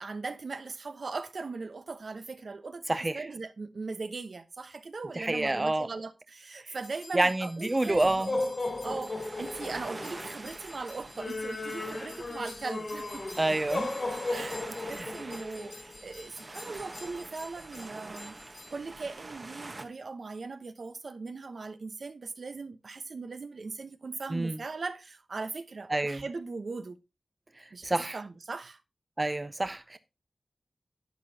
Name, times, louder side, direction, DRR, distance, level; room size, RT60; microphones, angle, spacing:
voice 1, 0.0-8.3 8.8-13.4 14.3-18.4 18.7-27.0 27.7-28.8, right 4 dB, 70° right, 0.9 m, -39 dB
voice 2, 2.9-3.2 5.2-5.9 7.1-8.3 13.4-13.9 14.9-15.1 24.3-24.6 25.9-26.2 27.8-28.2 29.2-30.0, right 2 dB, 30° right, 0.5 m, -28 dB
sound 1, 6.8-18.7, left 2 dB, 60° left, 2.9 m, -37 dB
sound 2, 8.6-19.9, right 2 dB, 50° right, 1.2 m, -45 dB
11.5 x 8.6 x 2.8 m
wide cardioid pair, 60°, 0 cm